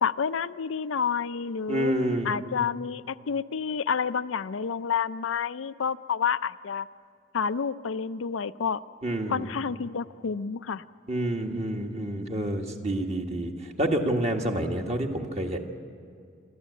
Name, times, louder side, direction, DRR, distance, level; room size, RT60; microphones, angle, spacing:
voice 1, 0.0-1.9 2.2-6.9 7.3-8.8 9.3-10.8, left 6 dB, 85° left, 14 dB, 0.5 m, -29 dB
voice 2, 1.7-2.3 9.0-9.5 11.1-15.6, right 1 dB, 35° right, 2 dB, 1.7 m, -28 dB
25.5 x 13.5 x 8.3 m, 2.3 s
head